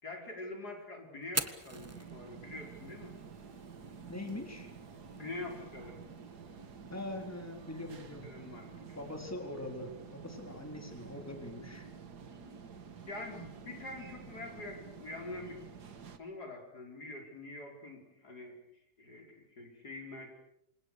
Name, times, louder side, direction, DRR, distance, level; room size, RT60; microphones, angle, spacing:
voice 1, 0.0-3.2 5.2-6.0 8.2-9.0 13.1-15.6 16.2-18.6 19.0-20.3, left 2 dB, 75° left, 2 dB, 5.5 m, -45 dB
Fire, 1.2-9.2, right 2 dB, 10° right, 1.2 m, -46 dB
sound 1, 1.7-16.2, right 6 dB, 80° right, 2.2 m, -50 dB
voice 2, 4.1-4.7 6.9-8.3 8.9-11.9, left 1 dB, 10° left, 3 dB, 4.1 m, -42 dB
28.5 x 26.0 x 6.7 m, 0.79 s
omnidirectional pair, 1.7 m